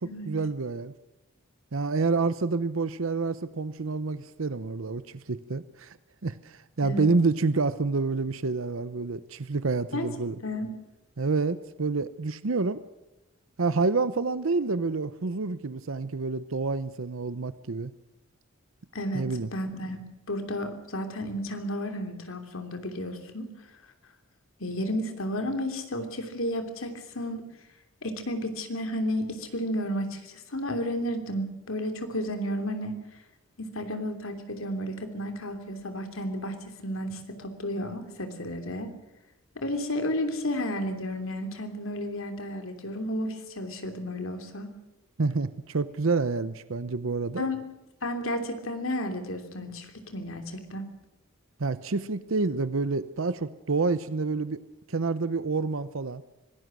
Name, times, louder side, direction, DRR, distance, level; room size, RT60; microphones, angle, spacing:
voice 1, 0.0-0.9 1.7-6.0 6.2-10.4 11.2-12.8 13.6-17.9 19.1-19.5 45.2-47.5 51.6-54.6 54.9-56.2, right 3 dB, 70° right, 14 dB, 0.8 m, -28 dB
voice 2, 10.4-10.7 18.9-19.3 19.5-20.0 20.3-23.5 24.6-27.4 28.0-33.0 33.6-36.6 36.8-38.9 39.6-44.7 47.4-47.6 48.0-50.9, left 1 dB, 75° left, 7 dB, 3.1 m, -32 dB
25.5 x 18.0 x 6.2 m, 0.97 s
head